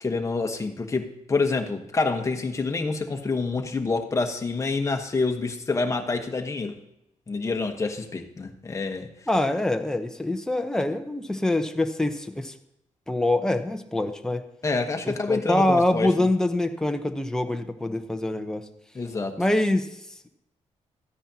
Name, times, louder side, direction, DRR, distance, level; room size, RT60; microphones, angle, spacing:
voice 1, 0.0-6.8 7.3-9.1 14.6-16.3 18.9-19.4, left 3 dB, 25° left, 4 dB, 1.2 m, -27 dB
voice 2, 9.3-12.5 13.1-14.4 15.1-18.7 19.4-20.3, left 1 dB, 5° left, 6 dB, 0.8 m, -25 dB
13.5 x 9.8 x 2.9 m, 0.85 s
cardioid pair, 135°, 12 cm